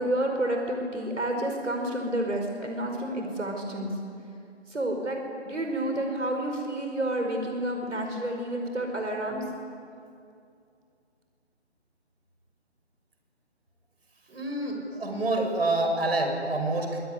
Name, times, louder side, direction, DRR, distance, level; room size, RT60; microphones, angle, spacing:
voice 1, 0.0-3.9 4.7-5.2 5.4-9.4, right 1 dB, 80° right, 3 dB, 5.1 m, -29 dB
voice 2, 14.3-17.0, right 2 dB, 55° right, 3 dB, 5.9 m, -27 dB
25.5 x 21.5 x 9.7 m, 2.4 s
figure-of-eight pair, 165°, 35 cm